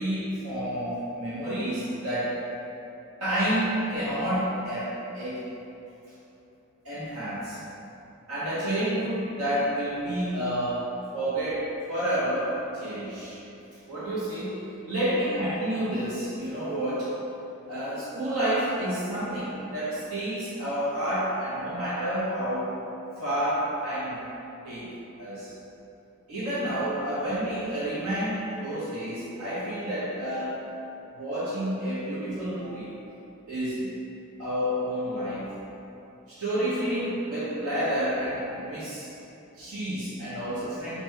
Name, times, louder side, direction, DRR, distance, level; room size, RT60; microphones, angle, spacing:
voice 1, 0.0-2.4 3.2-5.4 6.8-7.6 8.3-10.9 11.1-13.4 13.9-14.6 14.9-17.1 17.6-22.7 23.2-24.2 24.6-24.9 25.2-25.5 26.3-30.6 31.1-32.9 33.5-33.9 34.4-35.5 36.3-39.1 39.6-41.0, right 1 dB, 85° right, -10 dB, 1.0 m, -29 dB
4.1 x 2.2 x 4.6 m, 2.9 s
head